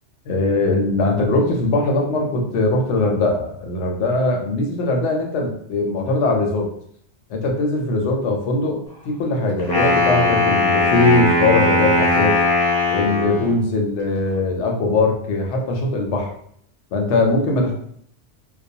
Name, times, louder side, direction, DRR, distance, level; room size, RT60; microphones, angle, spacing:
voice 1, 0.3-6.7 7.3-8.8 9.0-12.4 12.9-16.3 16.9-17.8, left 2 dB, 80° left, 1 dB, 0.9 m, -20 dB
Wind instrument woodwind instrument, 9.6-13.6, left 2 dB, 35° left, 0.4 m, -19 dB
2.3 x 2.2 x 2.7 m, 0.65 s
omnidirectional pair, 1.2 m